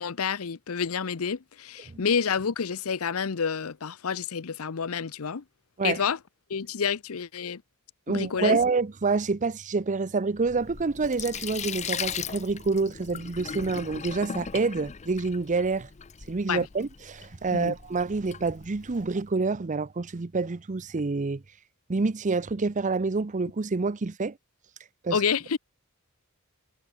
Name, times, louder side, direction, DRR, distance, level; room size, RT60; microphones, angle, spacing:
voice 1, 0.0-5.4 5.8-6.2 6.5-7.6 8.1-8.6 16.5-16.7 17.5-17.7 25.1-25.6, left 6 dB, 70° left, 0.7 m, -29 dB
voice 2, 8.1-15.9 16.3-21.4 21.9-24.4 25.0-25.2, right 4 dB, 35° right, 0.6 m, -27 dB
Sink (filling or washing), 10.4-19.2, left 7 dB, 30° left, 0.6 m, -38 dB
head